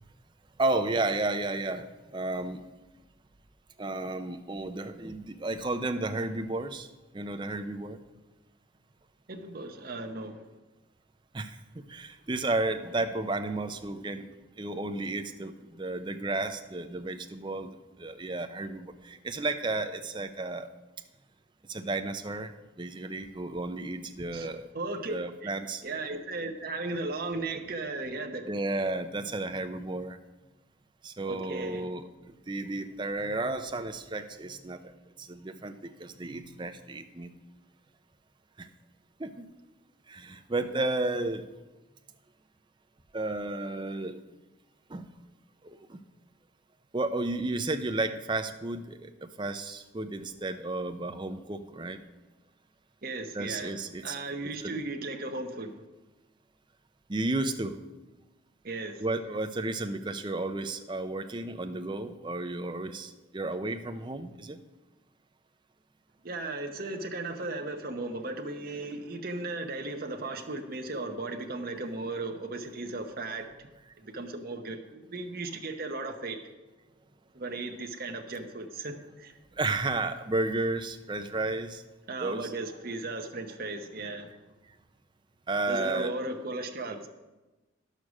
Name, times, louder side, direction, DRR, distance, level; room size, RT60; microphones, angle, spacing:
voice 1, 0.6-2.7 3.8-8.0 11.3-14.3 14.6-17.7 18.0-20.7 21.7-22.5 22.8-24.7 25.1-25.8 28.4-30.2 31.0-32.0 32.5-37.3 38.6-38.7 39.2-39.5 40.1-41.5 43.1-44.2 44.9-45.1 45.6-46.0 46.9-52.0 53.3-54.2 54.6-54.8 57.1-57.8 59.0-64.6 79.6-81.8 82.2-82.5 85.5-86.1, right 2 dB, 25° right, 8 dB, 0.6 m, -33 dB
voice 2, 9.3-10.4 24.3-25.2 25.4-25.5 25.8-28.5 31.3-31.9 53.0-53.7 54.0-55.8 58.6-59.0 66.2-73.7 74.0-76.4 77.3-79.4 82.1-84.3 85.7-87.1, right 2 dB, 45° right, 4 dB, 0.9 m, -36 dB
11.0 x 6.6 x 6.2 m, 1.1 s
head